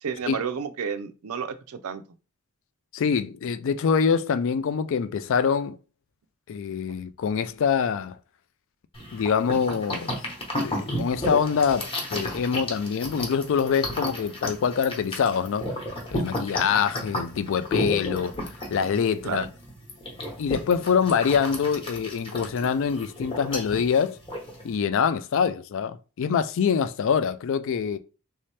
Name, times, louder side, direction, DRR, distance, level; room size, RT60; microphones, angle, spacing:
voice 1, 0.0-2.0 19.2-19.5, right 6 dB, 75° right, 0.4 m, -31 dB
voice 2, 2.9-5.8 6.5-8.2 9.1-10.1 10.6-15.6 16.1-18.4 18.7-19.5 20.4-24.2 24.6-28.0, left 6 dB, 60° left, 0.3 m, -25 dB
sound 1, 8.9-24.7, left 1 dB, 25° left, 0.9 m, -33 dB
3.2 x 2.8 x 3.2 m
head